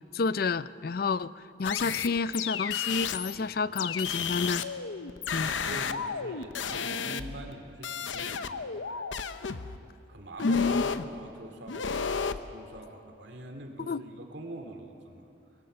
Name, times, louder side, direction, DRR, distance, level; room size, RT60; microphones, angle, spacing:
voice 1, 0.1-4.7 5.3-5.5 10.4-10.8 13.9-14.0, left 4 dB, 50° left, 17 dB, 0.4 m, -29 dB
sound 1, 1.6-3.4 3.8-7.5 7.8-9.8 10.4-11.1 11.7-12.4, left 6 dB, 80° left, 0.8 m, -33 dB
voice 2, 4.2-4.5 5.4-9.1 10.1-10.8 11.1-15.3, right 1 dB, 65° right, 4 dB, 2.5 m, -45 dB
22.0 x 22.0 x 6.7 m, 2.6 s
head